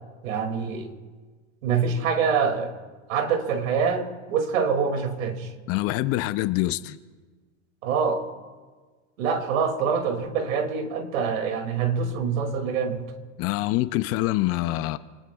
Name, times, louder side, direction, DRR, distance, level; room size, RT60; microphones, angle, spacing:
voice 1, 0.2-0.9 1.6-2.7 3.1-5.5 7.8-8.3 9.2-13.1, right 6 dB, 75° right, 2.6 m, -25 dB
voice 2, 5.7-7.0 13.4-15.0, left 17 dB, 35° left, 0.5 m, -25 dB
28.5 x 19.5 x 2.4 m
supercardioid pair, 130°, 40 cm